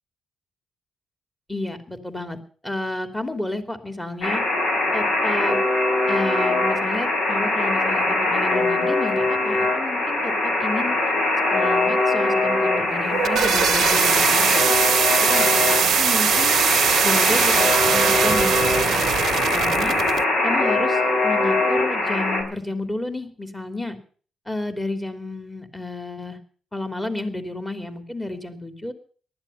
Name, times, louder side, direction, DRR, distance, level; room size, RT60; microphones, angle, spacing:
voice 1, 1.5-4.4 4.9-5.6 6.1-11.0 11.5-14.6 15.2-18.6 18.9-19.0 19.3-20.0 20.4-24.0 24.5-26.4 26.7-28.9, left 2 dB, 10° left, 8 dB, 3.2 m, -31 dB
Alarm, 4.2-22.4, left 2 dB, 70° left, 7.5 m, -22 dB
sound 1, 12.9-20.2, right 9 dB, 70° right, 0.7 m, -21 dB
19.0 x 13.0 x 5.7 m, 0.43 s
cardioid pair, 95°, 0 cm